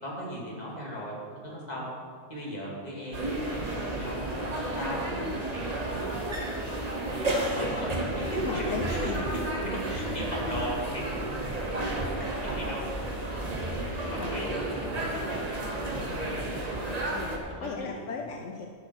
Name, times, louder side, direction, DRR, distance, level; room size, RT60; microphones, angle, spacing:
voice 1, 0.0-1.9 2.3-4.3 4.6-6.8 7.3-13.1 13.9-17.0 17.5-18.1, equal, 35° left, -4 dB, 2.5 m, -38 dB
sound 1, 3.1-17.4, right 1 dB, 35° right, 1.3 m, -32 dB
voice 2, 8.4-9.3 12.0-12.1 14.0-15.0 17.0-18.7, left 6 dB, 80° left, 2 dB, 1.0 m, -38 dB
12.0 x 5.9 x 6.2 m, 2.1 s
omnidirectional pair, 1.2 m